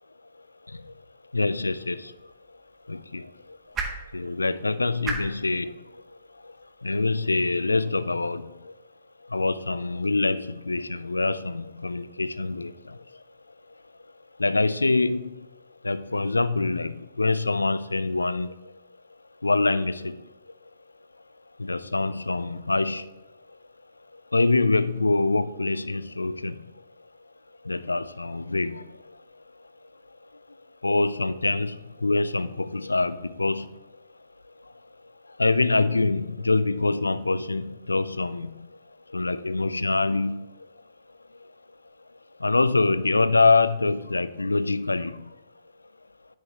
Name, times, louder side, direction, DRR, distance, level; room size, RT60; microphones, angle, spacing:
voice 1, 1.3-2.1 2.9-3.3 4.1-5.7 6.8-8.5 9.3-13.0 14.4-15.3 15.8-16.9 17.2-18.5 19.4-20.2 21.6-23.1 24.3-26.6 27.7-28.8 30.8-33.7 35.4-38.5 39.1-40.5 42.4-45.2, left 3 dB, 85° left, 0.3 m, -25 dB
sound 1, 1.9-8.2, right 4 dB, 25° right, 1.1 m, -40 dB
9.7 x 7.9 x 2.9 m
figure-of-eight pair, 110°, 0 cm